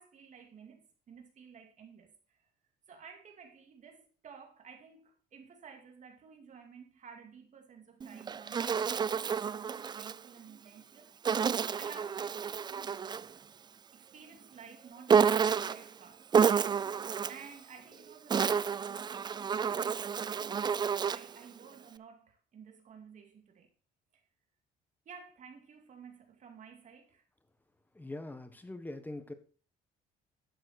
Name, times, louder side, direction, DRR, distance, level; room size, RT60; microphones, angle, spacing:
voice 1, 0.0-2.5 2.9-13.1 13.9-16.3 17.3-20.6 21.1-23.7 25.1-27.2, right 6 dB, 45° right, 2.3 m, -53 dB
Insect, 8.0-10.2 11.3-13.3 15.1-15.9 16.3-17.5 18.1-21.4, right 6 dB, 25° right, 0.4 m, -29 dB
voice 2, 27.9-29.3, left 2 dB, 10° left, 1.4 m, -42 dB
12.0 x 7.4 x 4.3 m
cardioid pair, 110°, 17 cm